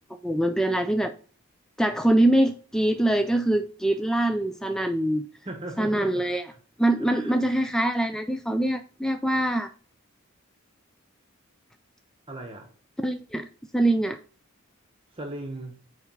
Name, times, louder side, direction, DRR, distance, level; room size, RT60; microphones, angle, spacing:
voice 1, 0.2-1.1 1.8-5.3 5.8-6.5 6.8-9.7 13.0-13.5 13.7-14.2, right 1 dB, 5° left, 0.4 m, -24 dB
voice 2, 5.4-6.2 7.0-7.4 12.3-12.7 15.1-15.8, right 1 dB, 25° right, 1.0 m, -37 dB
9.0 x 3.4 x 5.4 m
head